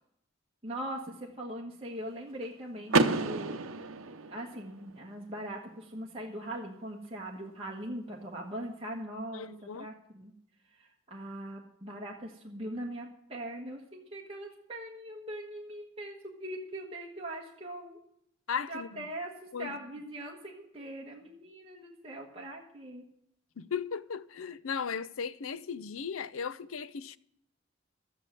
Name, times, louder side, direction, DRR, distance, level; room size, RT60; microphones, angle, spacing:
voice 1, 0.6-3.7 4.3-10.3 10.7-18.0 18.7-23.0, right 1 dB, 25° right, 1.5 m, -41 dB
Car / Door, 2.9-4.8, right 3 dB, 75° right, 0.9 m, -29 dB
voice 2, 9.3-9.9 18.5-19.0 19.5-19.8 23.6-27.2, left 6 dB, 80° left, 0.6 m, -36 dB
12.5 x 8.3 x 7.6 m
head